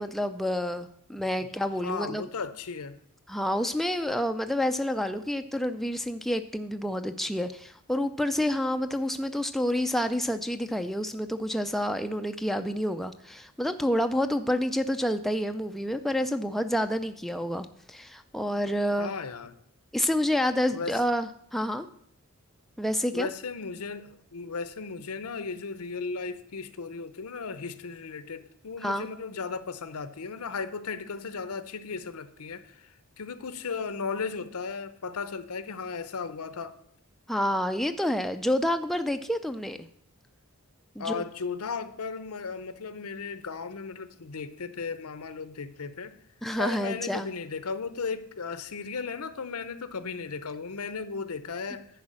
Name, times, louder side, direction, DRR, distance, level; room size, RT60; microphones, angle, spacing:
voice 1, 0.0-2.3 3.3-19.1 19.9-21.9 22.8-23.3 28.8-29.1 37.3-39.8 41.0-41.2 46.4-47.3, equal, ahead, 0.3 m, -28 dB
voice 2, 1.8-3.0 19.0-19.5 20.7-20.9 23.1-36.8 41.0-46.1 46.6-51.9, left 5 dB, 80° left, 0.7 m, -36 dB
10.0 x 4.8 x 7.4 m
head